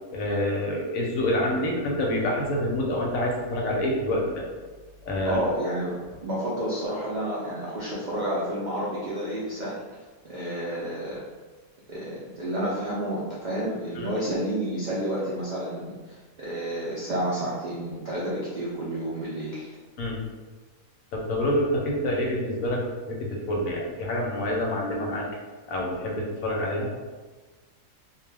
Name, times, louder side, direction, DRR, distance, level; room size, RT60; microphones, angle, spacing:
voice 1, 0.1-4.4 5.1-5.4 13.9-14.1 20.0-20.2 21.1-25.3 25.7-26.9, left 1 dB, 70° left, -2 dB, 1.0 m, -27 dB
voice 2, 5.2-9.8 10.2-11.2 11.9-19.7, right 1 dB, 65° right, -8 dB, 0.4 m, -30 dB
2.4 x 2.2 x 3.2 m, 1.3 s
omnidirectional pair, 1.5 m